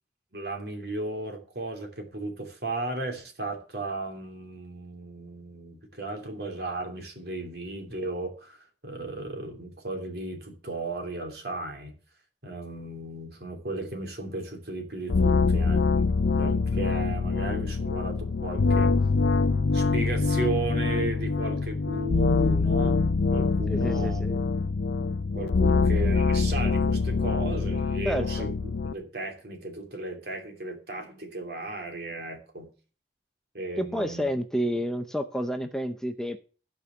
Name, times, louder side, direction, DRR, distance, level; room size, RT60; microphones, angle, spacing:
voice 1, 0.3-12.0 12.4-19.0 19.7-23.0 23.3-24.3 25.3-28.5 28.9-32.7 33.5-34.3, right 2 dB, 60° right, 3 dB, 3.0 m, -35 dB
sound 1, 15.1-28.9, left 4 dB, 80° left, 0.5 m, -24 dB
voice 2, 23.7-24.4 28.0-28.5 33.8-36.4, equal, 5° left, 7 dB, 0.6 m, -30 dB
14.0 x 5.2 x 6.9 m, 0.37 s
head